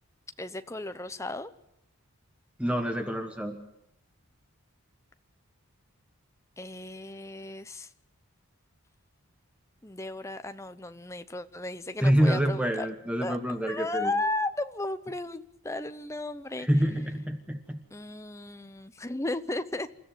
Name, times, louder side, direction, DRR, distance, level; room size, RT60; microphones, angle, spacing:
voice 1, 0.4-1.5 6.6-7.9 9.8-12.9 13.2-13.4 13.7-16.7 17.9-19.9, left 2 dB, 15° left, 10 dB, 0.8 m, -34 dB
voice 2, 2.6-3.6 12.0-14.1 16.6-17.8, equal, 5° right, 5 dB, 1.2 m, -26 dB
28.5 x 13.5 x 9.3 m, 0.79 s
head